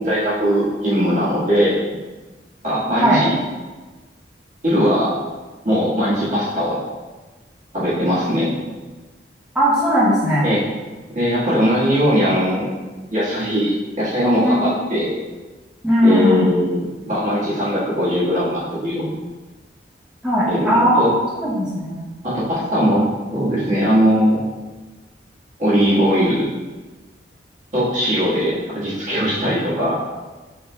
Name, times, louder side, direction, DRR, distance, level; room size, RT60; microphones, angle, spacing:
voice 1, 0.0-1.8 2.6-3.3 4.6-5.2 5.6-6.8 7.7-8.5 10.4-10.6 11.1-12.8 13.1-15.1 16.0-19.2 20.5-21.1 22.2-24.4 25.6-26.5 27.7-30.0, equal, 45° right, -9 dB, 1.5 m, -19 dB
voice 2, 2.9-3.2 9.5-10.4 14.4-14.6 15.8-16.5 20.2-21.1 21.3-22.0, equal, 5° right, -11 dB, 0.8 m, -17 dB
4.3 x 3.9 x 2.3 m, 1.3 s
head